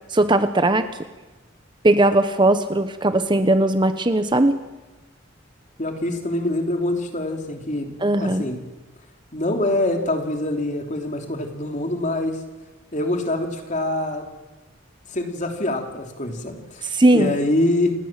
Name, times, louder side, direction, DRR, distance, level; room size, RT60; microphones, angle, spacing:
voice 1, 0.1-0.9 1.8-4.6 8.0-8.5 16.8-17.3, right 1 dB, 25° right, 10 dB, 0.9 m, -18 dB
voice 2, 5.8-7.9 8.2-8.6 9.3-12.4 12.9-14.2 15.1-17.9, left 1 dB, 35° left, 4 dB, 3.2 m, -25 dB
29.0 x 19.5 x 7.5 m, 1.1 s
head